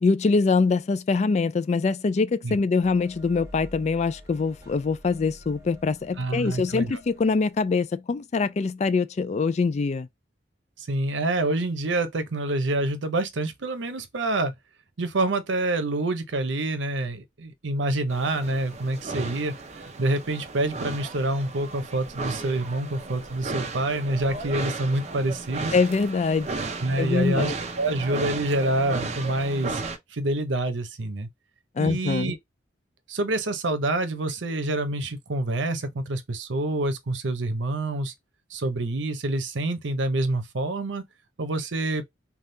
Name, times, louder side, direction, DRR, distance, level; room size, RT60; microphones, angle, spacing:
voice 1, 0.0-10.1 25.7-26.5 27.0-27.5 31.8-32.3, left 4 dB, 40° left, 0.3 m, -24 dB
sound 1, 2.8-7.8, equal, 15° right, 1.3 m, -48 dB
voice 2, 6.2-6.9 10.8-14.5 15.0-19.5 20.0-25.7 26.8-29.8 30.1-31.3 31.8-32.4 33.1-38.1 38.5-41.1 41.4-42.0, right 2 dB, 90° right, 0.7 m, -27 dB
sound 2, 18.1-30.0, right 3 dB, 40° right, 0.6 m, -35 dB
3.5 x 2.3 x 2.6 m
head